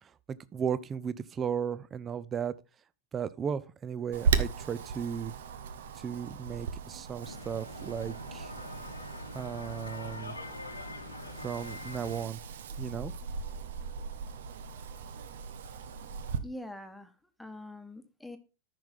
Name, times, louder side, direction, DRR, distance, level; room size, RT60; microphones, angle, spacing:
voice 1, 0.0-2.5 3.1-5.3 5.9-8.5 9.3-10.4 11.4-12.4 12.8-13.1, right 7 dB, 25° right, 0.6 m, -35 dB
Wind, 4.1-16.4, right 6 dB, 60° right, 0.8 m, -37 dB
sound 1, 7.2-12.3, left 2 dB, 80° left, 1.2 m, -44 dB
voice 2, 16.4-18.4, left 1 dB, ahead, 1.2 m, -44 dB
13.5 x 5.9 x 3.6 m
figure-of-eight pair, 90°, 0 cm